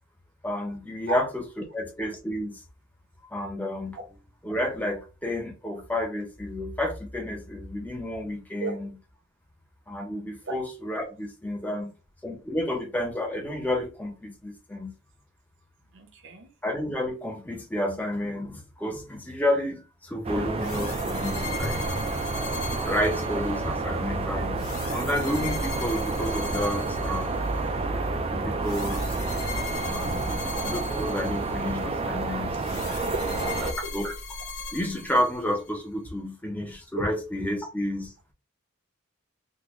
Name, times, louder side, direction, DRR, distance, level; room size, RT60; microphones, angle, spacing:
voice 1, 0.4-2.6 3.3-4.0 4.4-9.0 9.9-11.9 12.2-14.9 16.6-22.1 22.8-24.6 24.9-27.4 28.3-29.2 29.8-34.1 34.7-38.1, left 1 dB, 10° left, 0.6 m, -31 dB
voice 2, 15.9-16.5 33.1-33.9 36.9-37.1, right 3 dB, 60° right, 0.8 m, -33 dB
sound 1, 20.2-33.7, right 3 dB, 30° right, 0.4 m, -29 dB
sound 2, 20.6-23.7 24.6-27.7 28.6-31.8 32.6-35.7, left 4 dB, 80° left, 0.7 m, -38 dB
3.7 x 2.2 x 3.0 m
head